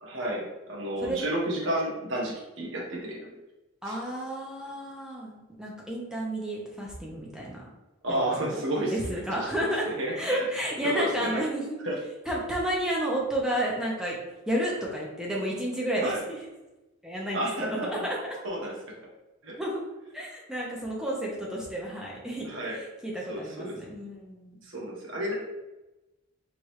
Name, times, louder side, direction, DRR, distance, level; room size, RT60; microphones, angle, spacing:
voice 1, 0.0-3.3 3.8-4.0 8.0-9.7 10.0-10.4 10.8-11.3 11.8-12.0 16.0-16.2 17.3-18.0 18.4-18.7 19.4-19.6 22.4-22.8 23.3-23.7 24.6-25.3, right 1 dB, 75° right, -2 dB, 1.2 m, -31 dB
voice 2, 3.8-7.7 8.4-8.6 8.9-9.9 10.1-11.6 12.2-14.2 14.5-16.4 17.0-18.4 19.6-19.8 20.1-24.6, right 1 dB, 5° right, -4 dB, 1.0 m, -31 dB
4.9 x 3.5 x 3.1 m, 1.0 s
head